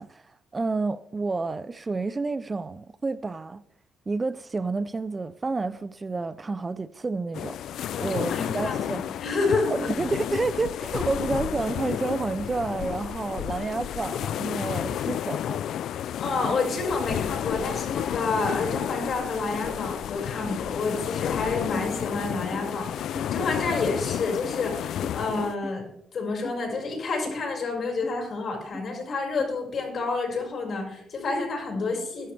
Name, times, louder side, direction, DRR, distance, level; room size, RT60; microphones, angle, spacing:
voice 1, 0.0-3.6 4.1-9.1 9.7-15.6, right 3 dB, 25° right, 0.5 m, -30 dB
sound 1, 7.3-25.5, left 10 dB, 75° left, 0.4 m, -31 dB
voice 2, 7.9-8.8 9.2-9.9 16.2-32.3, left 3 dB, 55° left, 5.6 m, -29 dB
sound 2, 22.5-22.7 23.1-23.3 23.8-23.9 24.4-24.6 25.0-25.2 25.6-25.8 26.4-26.6 27.3-27.4 28.0-28.2 28.7-28.8 29.4-29.5, left 1 dB, ahead, 3.5 m, -39 dB
21.5 x 11.0 x 3.4 m
cardioid pair, 90°, 0 cm